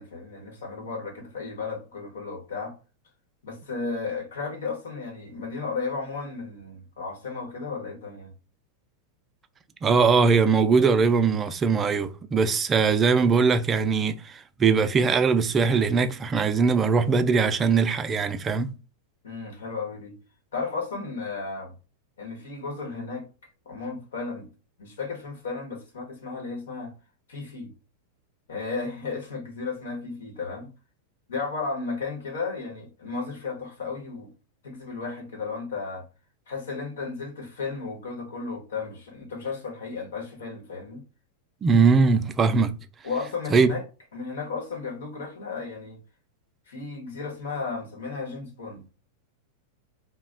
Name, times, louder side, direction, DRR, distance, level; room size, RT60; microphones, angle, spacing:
voice 1, 0.0-2.7 3.4-8.3 19.2-20.1 20.5-21.7 22.2-23.3 23.6-24.5 24.8-26.9 27.3-27.7 28.5-30.7 31.3-34.3 34.6-36.1 36.5-41.0 43.0-43.8 44.1-46.0 46.7-48.9, left 4 dB, 85° left, 1.1 m, -34 dB
voice 2, 9.8-18.7 41.6-42.7 43.5-43.7, right 5 dB, 25° right, 0.3 m, -21 dB
2.3 x 2.1 x 3.7 m
hypercardioid pair, 120°, 0 cm